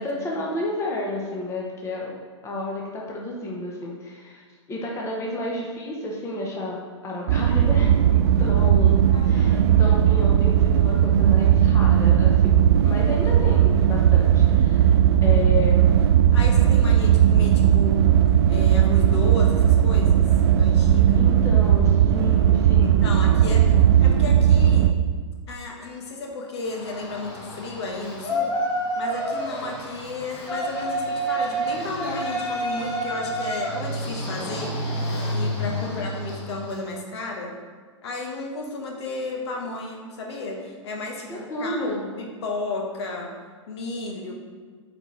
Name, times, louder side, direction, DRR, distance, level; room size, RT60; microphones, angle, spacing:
voice 1, 0.0-2.1 2.4-4.4 4.7-12.5 12.8-15.9 21.1-23.0 23.5-23.8 35.6-36.0 41.3-42.0, left 1 dB, 15° left, -2 dB, 1.0 m, -31 dB
sound 1, 7.3-24.9, right 10 dB, 55° right, 0.4 m, -17 dB
voice 2, 9.1-10.0 13.1-13.5 16.3-18.0 18.5-21.3 22.8-23.7 24.0-24.9 25.5-28.5 28.9-34.8 35.3-37.5 38.0-43.3 43.7-44.3, left 2 dB, 60° left, 1 dB, 1.2 m, -33 dB
Yell, 26.6-36.8, equal, 35° left, 1.8 m, -29 dB
8.7 x 4.1 x 3.2 m, 1.5 s
hypercardioid pair, 115°, 16 cm